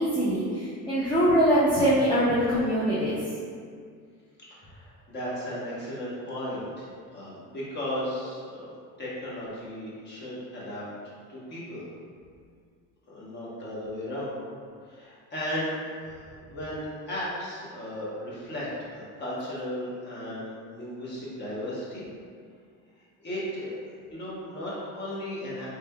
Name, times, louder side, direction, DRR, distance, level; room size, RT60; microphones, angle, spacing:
voice 1, 0.0-3.2, equal, 15° left, -10 dB, 0.3 m, -23 dB
voice 2, 4.5-8.7 9.0-10.8 11.3-11.8 13.1-14.3 14.8-16.2 16.5-22.1 23.2-23.7 24.1-25.7, left 1 dB, 30° left, -8 dB, 1.0 m, -35 dB
3.3 x 3.3 x 2.2 m, 2.1 s
cardioid pair, 140°, 36 cm